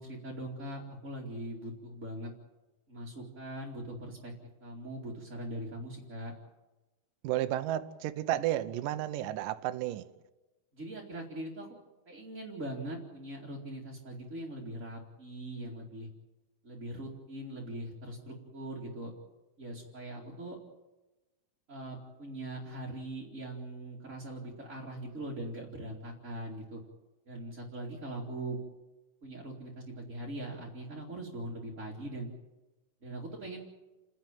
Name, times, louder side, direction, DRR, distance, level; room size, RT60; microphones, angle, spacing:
voice 1, 0.0-2.3 2.9-4.3 4.6-6.3 10.7-11.7 12.1-16.1 16.6-19.1 19.6-20.6 21.7-26.8 27.3-28.6 29.2-32.3 33.0-33.7, right 1 dB, 25° right, 1.9 m, -41 dB
voice 2, 7.2-10.1, right 13 dB, 75° right, 2.0 m, -32 dB
29.0 x 11.0 x 9.0 m
omnidirectional pair, 4.9 m